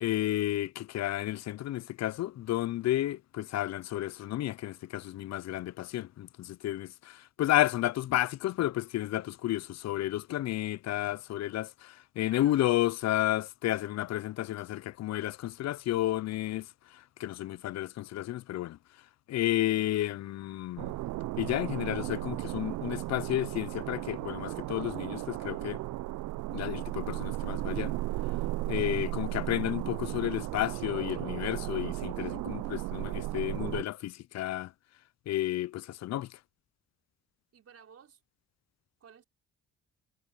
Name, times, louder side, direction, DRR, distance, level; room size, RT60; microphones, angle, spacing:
voice 1, 0.0-16.7 17.2-18.8 19.3-20.9 21.4-25.8 26.5-27.9 28.7-34.7 35.3-36.3, left 14 dB, 60° left, 0.5 m, -31 dB
voice 2, 12.3-13.0 19.8-20.1 37.5-38.2 39.0-39.2, right 7 dB, 55° right, 5.0 m, -56 dB
sound 1, 20.8-33.8, right 17 dB, 75° right, 0.5 m, -35 dB
cardioid pair, 90°, 30 cm